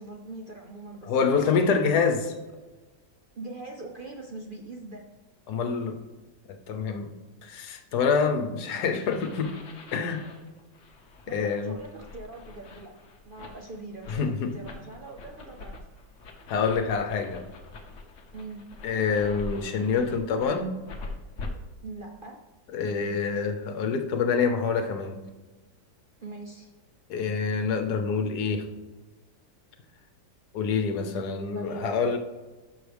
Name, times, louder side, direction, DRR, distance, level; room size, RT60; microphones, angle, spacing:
voice 1, 0.0-1.7 3.4-5.0 11.3-12.9 13.2-15.8 18.3-18.6 21.8-22.4 26.2-26.7 31.2-31.3 31.5-32.2, right 2 dB, 65° right, 1 dB, 0.5 m, -41 dB
voice 2, 1.1-2.4 5.5-6.0 6.5-7.1 7.4-9.6 9.9-10.2 11.3-11.7 14.1-14.6 16.5-17.4 18.8-20.8 22.7-25.2 27.1-28.7 30.5-32.2, left 5 dB, 70° left, 6 dB, 1.4 m, -26 dB
sound 1, 9.1-21.5, left 3 dB, 50° left, 1.1 m, -44 dB
11.0 x 6.2 x 3.4 m, 1.2 s
omnidirectional pair, 1.8 m